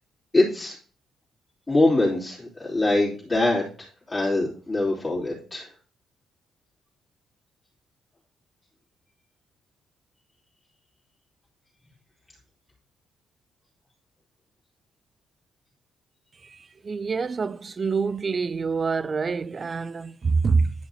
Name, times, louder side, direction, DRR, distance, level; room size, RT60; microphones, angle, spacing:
voice 1, 0.3-0.7 1.7-5.7, left 2 dB, 20° left, 2.9 m, -23 dB
voice 2, 16.8-20.7, right 4 dB, 35° right, 0.3 m, -26 dB
11.0 x 5.9 x 2.7 m
cardioid pair, 90°, 0 cm